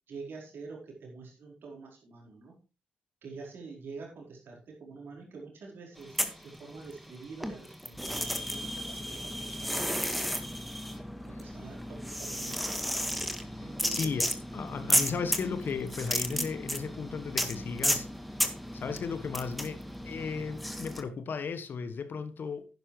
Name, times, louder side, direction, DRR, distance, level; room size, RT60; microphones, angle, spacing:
voice 1, 0.1-2.5 3.2-10.4 11.2-12.8 13.6-14.2 15.9-16.2, right 4 dB, 65° right, 4.5 m, -47 dB
sound 1, 6.0-7.1 7.4-21.0, equal, ahead, 1.8 m, -33 dB
voice 2, 13.9-18.1 18.7-19.8 20.0-22.7, left 5 dB, 60° left, 1.3 m, -35 dB
10.5 x 10.5 x 3.3 m
hypercardioid pair, 40°, 4 cm